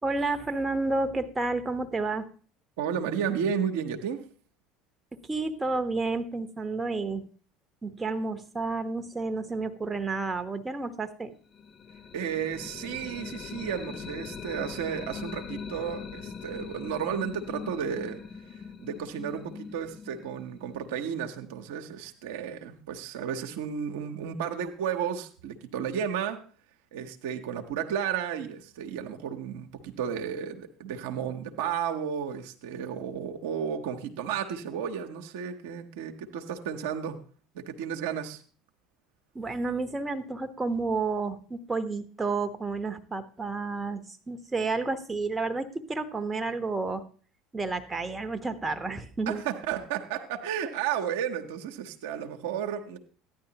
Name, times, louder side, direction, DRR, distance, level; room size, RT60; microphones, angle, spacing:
voice 1, 0.0-2.3 5.3-7.3 7.8-11.3 39.3-47.0 47.5-49.4, right 3 dB, 15° right, 8 dB, 1.1 m, -31 dB
voice 2, 2.8-4.3 12.1-26.4 26.9-37.2 37.5-38.4 49.3-53.0, right 8 dB, 70° right, 5 dB, 1.0 m, -33 dB
sound 1, 11.5-21.3, left 6 dB, 40° left, 0.8 m, -41 dB
14.0 x 10.0 x 2.9 m, 0.42 s
figure-of-eight pair, 70°, 0 cm